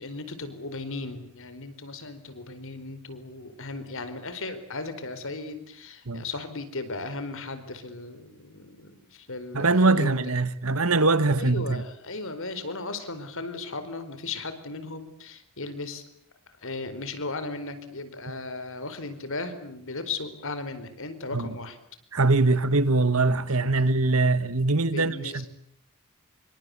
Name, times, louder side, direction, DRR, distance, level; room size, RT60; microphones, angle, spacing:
voice 1, 0.0-10.2 11.4-16.0 16.6-21.8 22.5-22.6 23.3-23.4 23.7-24.0 24.9-25.5, left 3 dB, 65° left, 4.6 m, -36 dB
voice 2, 9.5-11.8 21.3-21.5 22.1-25.5, right 3 dB, 70° right, 1.7 m, -22 dB
27.5 x 24.5 x 8.4 m
head